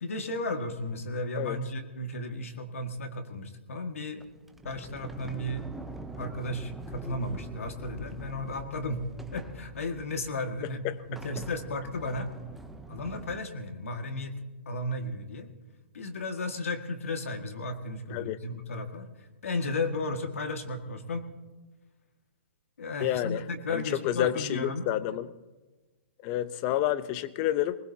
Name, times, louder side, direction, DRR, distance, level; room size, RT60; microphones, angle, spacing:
voice 1, 0.0-4.3 4.6-5.7 6.2-9.0 9.3-10.8 11.1-12.3 12.9-15.5 15.9-19.1 19.4-21.3 22.8-24.9, left 2 dB, 85° left, 6 dB, 1.9 m, -34 dB
Sliding door, 4.2-13.4, right 2 dB, ahead, 0.7 m, -45 dB
voice 2, 10.6-11.0 18.1-18.4 23.0-25.3 26.2-27.8, left 13 dB, 35° left, 15 dB, 0.7 m, -30 dB
20.5 x 20.0 x 2.8 m, 1.2 s
hypercardioid pair, 145°, 7 cm